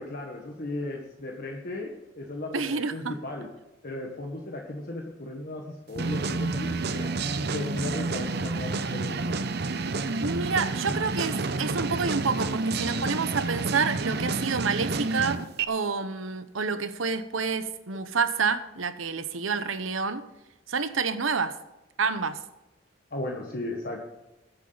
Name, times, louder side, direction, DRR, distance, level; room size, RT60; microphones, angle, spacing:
voice 1, 0.0-3.5 3.8-7.1 7.5-9.4 10.8-11.0 23.1-24.0, left 2 dB, 50° left, 1 dB, 1.5 m, -36 dB
voice 2, 2.5-3.2 10.2-15.4 15.7-20.3 20.7-21.5 22.0-22.4, right 5 dB, 80° right, 11 dB, 1.0 m, -28 dB
sound 1, 6.0-15.7, right 3 dB, 55° right, 0.8 m, -29 dB
21.0 x 8.3 x 4.1 m, 1.0 s
head